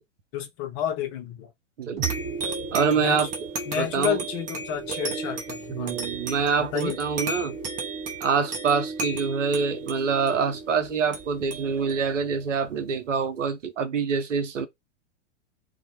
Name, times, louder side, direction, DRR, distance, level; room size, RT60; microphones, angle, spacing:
voice 1, 0.3-1.5 2.9-3.2 3.7-6.0 6.7-7.0, left 9 dB, 35° left, 0.6 m, -30 dB
sound 1, 2.0-13.1, right 3 dB, 20° right, 0.6 m, -34 dB
sound 2, 2.0-5.9, right 14 dB, 40° right, 1.1 m, -40 dB
voice 2, 2.7-3.3 3.7-4.2 5.7-7.6 8.2-14.7, right 5 dB, 85° right, 0.6 m, -25 dB
2.1 x 2.1 x 2.8 m
hypercardioid pair, 105°, 36 cm